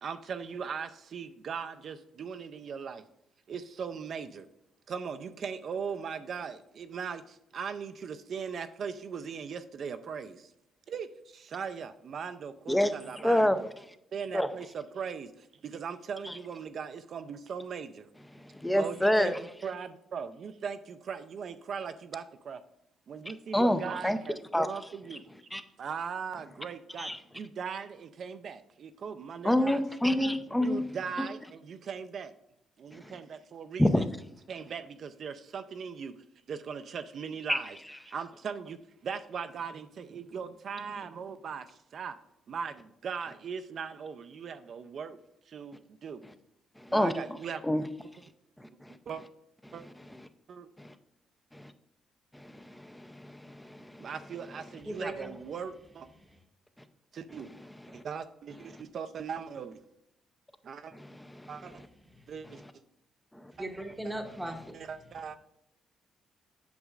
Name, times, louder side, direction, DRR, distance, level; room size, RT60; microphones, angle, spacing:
voice 1, 0.0-3.0 3.5-4.5 4.9-10.5 10.9-13.7 14.1-18.1 18.7-22.6 23.1-25.3 25.8-27.1 27.3-30.1 30.6-32.3 32.8-34.0 34.5-36.1 36.5-37.8 38.1-42.1 42.5-45.2 45.5-46.2 46.9-47.6 49.1-49.2 49.7-49.8 50.5-50.7 54.0-56.1 57.1-57.5 57.9-59.8 60.6-60.9 61.5-61.8 62.3-62.6 63.6-63.7 64.0-64.1 64.5-65.4, right 6 dB, 55° right, 0.5 m, -39 dB
voice 2, 13.2-13.6 14.3-14.5 16.3-16.4 18.5-19.4 23.5-24.2 24.5-24.7 25.5-25.6 27.0-27.2 29.4-30.8 31.2-31.3 33.0-33.1 33.8-34.0 37.5-37.6 46.8-47.1 47.6-47.8 48.8-49.0 50.8-50.9 51.5-51.7 52.3-54.1 57.9-58.0 60.9-61.1 61.4-61.5, left 1 dB, 5° left, 0.5 m, -27 dB
voice 3, 54.8-55.4 62.1-62.3 63.5-64.8, right 1 dB, 10° right, 0.9 m, -38 dB
8.1 x 6.2 x 2.4 m
cardioid pair, 90°, 0 cm